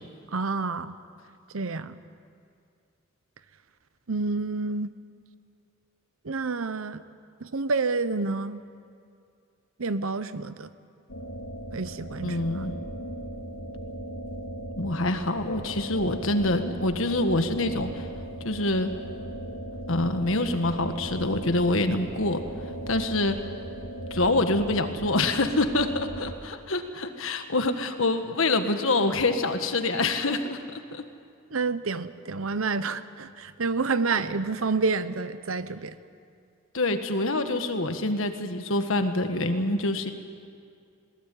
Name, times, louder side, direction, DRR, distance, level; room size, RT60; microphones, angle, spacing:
voice 1, 0.3-1.0 1.5-2.0 4.1-4.9 6.2-7.0 7.4-8.6 9.8-10.7 11.7-12.6 31.5-36.0, right 4 dB, 75° right, 13 dB, 0.9 m, -29 dB
sound 1, 11.1-26.3, right 1 dB, 90° left, 3.0 m, -38 dB
voice 2, 12.2-12.8 14.8-18.1 18.4-18.9 19.9-22.4 22.9-23.4 24.1-31.0 36.7-40.1, left 2 dB, 65° left, 7 dB, 1.6 m, -26 dB
21.0 x 19.0 x 9.3 m, 2.3 s
head